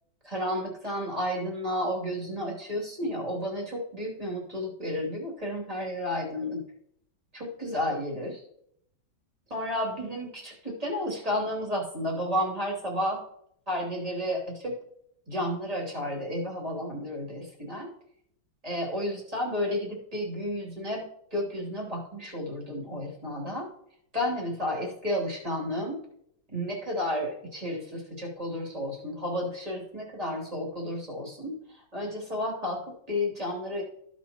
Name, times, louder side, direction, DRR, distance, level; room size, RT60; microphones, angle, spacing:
voice 1, 0.2-6.6 7.3-8.4 9.5-13.2 13.7-14.7 15.3-17.9 18.6-21.0 21.3-23.7 24.1-26.0 26.5-33.8, left 1 dB, 15° right, -2 dB, 2.8 m, -32 dB
15.0 x 6.1 x 2.9 m, 0.72 s
omnidirectional pair, 2.2 m